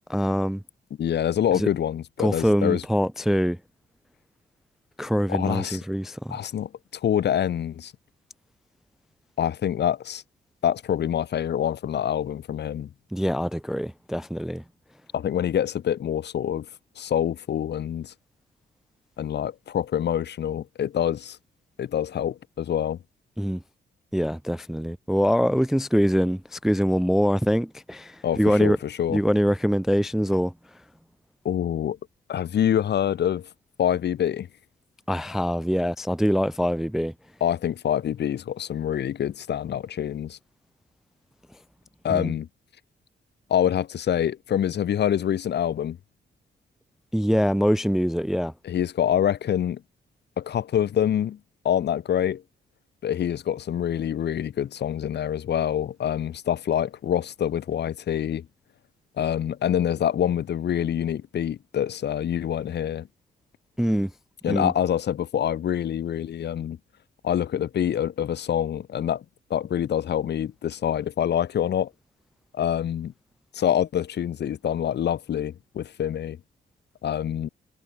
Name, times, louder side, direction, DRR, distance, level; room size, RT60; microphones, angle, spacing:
voice 1, 0.1-0.6 1.5-1.7 2.2-3.6 5.0-6.4 13.1-14.6 23.4-23.6 24.1-28.8 29.1-30.5 35.1-37.1 42.1-42.3 47.1-48.5 63.8-64.1 64.5-64.7, equal, ahead, 0.3 m, -24 dB
voice 2, 1.0-2.8 5.3-5.8 6.3-7.9 9.4-10.2 10.6-12.9 15.1-16.7 17.0-18.1 19.2-21.4 21.8-23.0 28.2-29.2 31.4-32.0 32.3-33.5 33.8-34.5 37.4-40.4 42.0-42.5 43.5-46.0 48.6-49.8 50.4-51.4 51.6-52.4 53.0-58.5 59.2-63.1 64.4-66.8 67.2-69.2 69.5-71.9 72.5-73.1 73.5-76.4 77.0-77.5, left 10 dB, 65° left, 1.2 m, -26 dB
cardioid pair, 95°, 19 cm